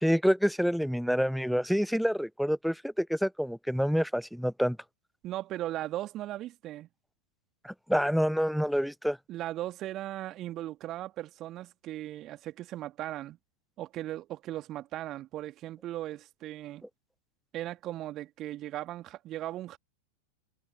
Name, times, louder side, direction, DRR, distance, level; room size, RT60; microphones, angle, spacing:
voice 1, 0.0-4.8 7.6-9.2, equal, ahead, 0.4 m, -27 dB
voice 2, 5.2-6.9 9.3-13.4 13.8-16.8 17.5-19.8, right 14 dB, 35° right, 1.9 m, -38 dB
figure-of-eight pair, 90°, 0 cm